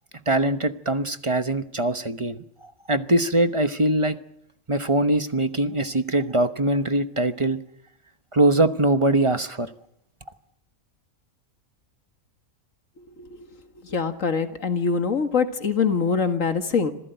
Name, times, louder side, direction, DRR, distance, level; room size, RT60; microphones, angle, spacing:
voice 1, 0.3-4.2 4.7-7.6 8.3-9.7, right 1 dB, 25° right, 10 dB, 1.0 m, -22 dB
voice 2, 13.8-16.9, left 5 dB, 70° left, 7 dB, 2.1 m, -23 dB
26.5 x 16.0 x 9.2 m, 0.72 s
omnidirectional pair, 1.4 m